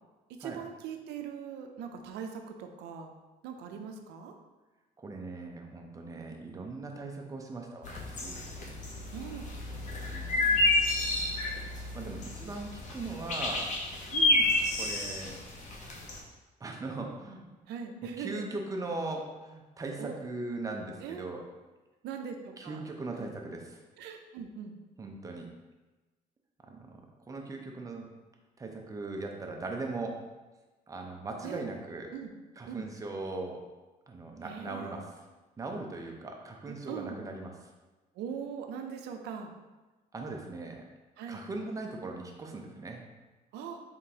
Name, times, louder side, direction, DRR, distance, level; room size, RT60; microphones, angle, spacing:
voice 1, 0.3-3.1 3.4-4.3 9.1-9.5 10.4-10.6 14.1-14.6 17.7-18.4 20.0-20.2 21.0-21.3 22.0-22.8 23.2-23.3 24.0-24.8 31.4-31.6 32.1-32.3 32.7-32.9 34.4-35.0 36.7-37.2 38.1-39.5 41.2-41.4 43.5-43.8, right 7 dB, 80° right, 4 dB, 0.5 m, -41 dB
voice 2, 5.0-8.4 10.0-10.7 11.9-13.7 14.7-15.3 16.6-17.4 18.2-21.4 22.6-23.8 25.0-25.5 26.6-27.0 27.3-28.1 28.6-30.2 30.9-32.1 32.6-33.6 34.1-35.3 35.6-37.5 40.1-40.8 41.3-43.0, right 3 dB, 20° right, 1 dB, 0.6 m, -39 dB
sound 1, 7.8-16.2, left 2 dB, 45° left, 0.9 m, -30 dB
3.7 x 3.4 x 2.8 m, 1.2 s
cardioid pair, 110°, 17 cm